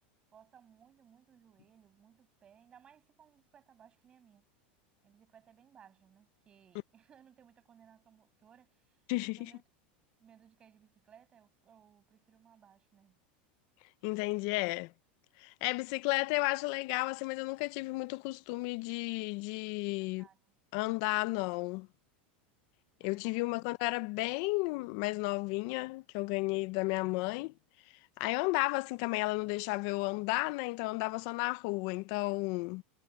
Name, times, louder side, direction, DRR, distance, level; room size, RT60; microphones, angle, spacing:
voice 1, 0.3-4.5 5.0-9.0 9.4-9.6 10.2-13.2 20.0-20.4 23.0-23.5, right 8 dB, 15° right, 6.3 m, -62 dB
voice 2, 9.1-9.5 14.0-14.9 15.4-20.3 20.7-21.9 23.0-27.5 28.2-32.8, left 24 dB, 40° left, 0.4 m, -33 dB
supercardioid pair, 180°, 6 cm